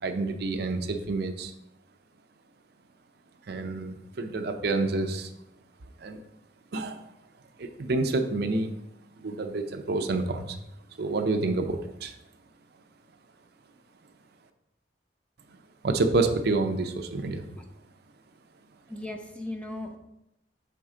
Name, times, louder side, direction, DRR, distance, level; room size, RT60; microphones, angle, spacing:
voice 1, 0.0-1.5 3.5-5.3 6.0-6.2 6.7-7.0 7.6-8.8 9.2-10.6 11.0-12.1 15.8-17.5, right 3 dB, 60° right, 7 dB, 0.6 m, -28 dB
voice 2, 18.9-20.0, left 1 dB, 5° left, 3 dB, 0.6 m, -37 dB
6.4 x 4.6 x 3.7 m, 0.86 s
head